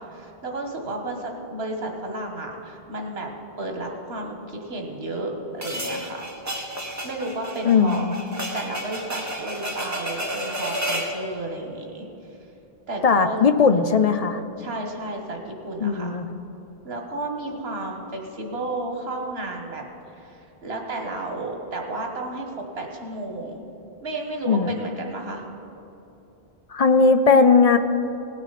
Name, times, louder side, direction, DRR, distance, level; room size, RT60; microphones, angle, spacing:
voice 1, 0.0-3.3 3.6-6.3 7.0-8.0 8.5-12.1 12.9-13.4 13.7-14.1 14.6-16.2 16.8-23.6 24.0-25.4, right 2 dB, 80° right, 2 dB, 1.7 m, -32 dB
sound 1, 5.6-11.2, equal, 15° right, 1.3 m, -31 dB
voice 2, 7.6-8.1 13.0-14.4 15.8-16.3 24.5-24.7 26.7-27.8, left 5 dB, 45° left, 9 dB, 0.5 m, -18 dB
18.0 x 9.1 x 4.1 m, 2.9 s
omnidirectional pair, 1.0 m